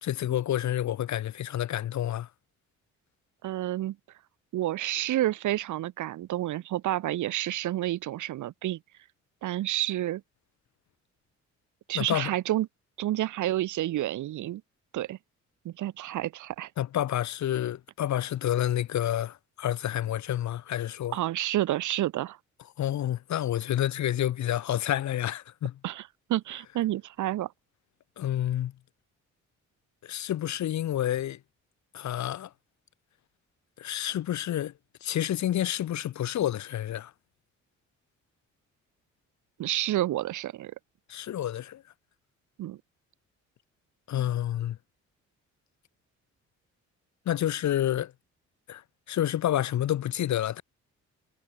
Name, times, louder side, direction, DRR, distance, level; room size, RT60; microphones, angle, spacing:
voice 1, 0.0-2.3 11.9-12.3 16.8-21.2 22.8-25.8 28.2-28.7 30.0-31.4 31.9-32.5 33.8-34.7 35.0-37.1 41.1-41.8 44.1-44.8 47.3-48.1 48.7-48.8 49.1-50.6, left 12 dB, 65° left, 1.7 m, -29 dB
voice 2, 3.4-4.0 4.5-8.8 9.4-10.2 11.9-12.7 13.0-14.6 14.9-15.2 15.6-16.7 21.1-22.4 25.8-27.5 39.6-40.7 42.6-42.8, right 14 dB, 75° right, 1.5 m, -29 dB
cardioid pair, 90°, 30 cm